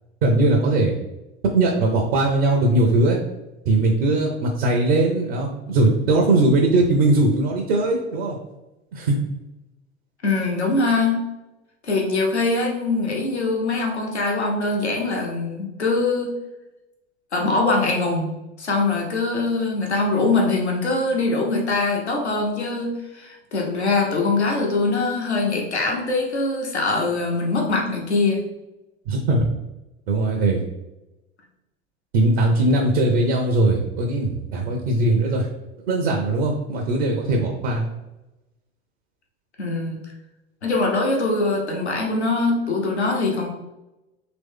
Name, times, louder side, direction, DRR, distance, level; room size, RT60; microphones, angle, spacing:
voice 1, 0.2-1.0 1.5-3.2 3.7-8.4 8.9-9.2 29.1-29.5 30.1-30.6 32.1-35.5 35.8-37.9, right 2 dB, 60° right, 1 dB, 0.7 m, -20 dB
voice 2, 10.2-11.2 11.8-16.3 17.3-28.4 39.6-40.0 40.6-43.5, left 3 dB, 90° left, 0 dB, 0.8 m, -22 dB
3.1 x 3.0 x 3.5 m, 0.97 s
figure-of-eight pair, 80°, 33 cm